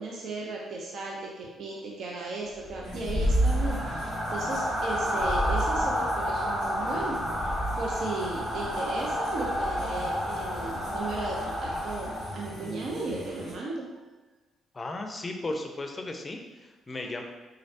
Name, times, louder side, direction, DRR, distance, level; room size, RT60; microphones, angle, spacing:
voice 1, 0.0-7.2 7.8-13.8, right 3 dB, 65° right, -2 dB, 0.6 m, -36 dB
sound 1, 2.6-12.6, equal, 25° right, 1.0 m, -29 dB
sound 2, 2.8-13.5, equal, 85° right, 1.2 m, -43 dB
voice 2, 14.7-17.2, left 2 dB, 25° left, 4 dB, 0.5 m, -35 dB
3.9 x 3.1 x 2.8 m, 1.2 s
cardioid pair, 90°, 0 cm